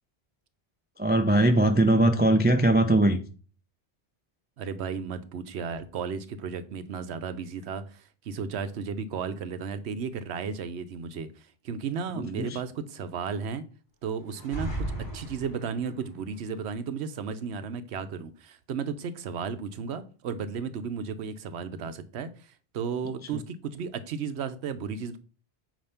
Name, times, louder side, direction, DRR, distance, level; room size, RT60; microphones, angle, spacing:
voice 1, 1.0-3.2 12.2-12.6, right 1 dB, 15° right, 0.4 m, -21 dB
voice 2, 4.6-13.6 14.0-14.9 15.1-25.2, right 6 dB, 75° right, 1.0 m, -34 dB
sound 1, 14.3-15.9, right 1 dB, 25° left, 2.1 m, -35 dB
8.7 x 2.9 x 5.7 m
omnidirectional pair, 1.1 m